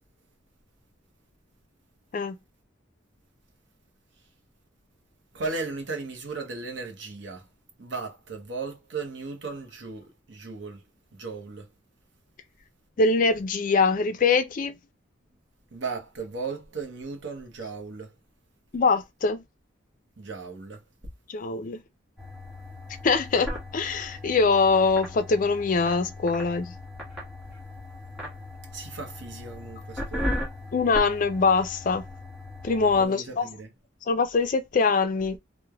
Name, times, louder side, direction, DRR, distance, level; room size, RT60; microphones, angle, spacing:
voice 1, 5.3-7.5 7.8-10.8 11.1-11.7 15.7-18.1 20.2-20.8 28.7-30.4 32.9-33.7, right 4 dB, 65° right, 0.8 m, -36 dB
voice 2, 13.0-14.7 18.7-19.4 21.3-21.8 23.0-26.7 30.7-32.0 32.6-33.5 34.1-35.4, left 4 dB, 40° left, 0.4 m, -23 dB
sound 1, 22.2-33.1, left 1 dB, ahead, 1.5 m, -37 dB
3.2 x 2.1 x 2.2 m
head